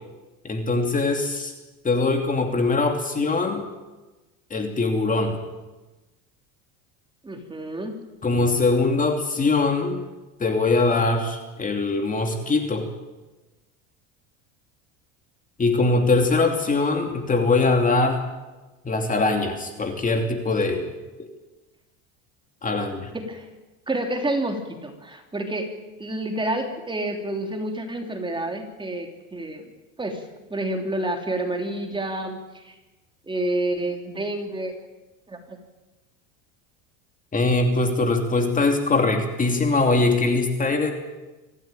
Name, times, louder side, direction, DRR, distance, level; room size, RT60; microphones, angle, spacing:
voice 1, 0.4-1.5 1.8-3.6 4.5-5.4 8.2-10.0 10.4-12.9 15.6-18.2 18.8-20.9 22.6-23.1 37.3-40.9, left 3 dB, 20° left, 4 dB, 2.8 m, -22 dB
voice 2, 7.2-8.0 23.1-23.5 23.9-25.7 26.0-29.6 30.0-32.7 33.3-34.7 35.3-35.4, right 1 dB, 10° right, 3 dB, 3.3 m, -29 dB
25.0 x 15.0 x 9.1 m, 1.1 s
supercardioid pair, 120°, 39 cm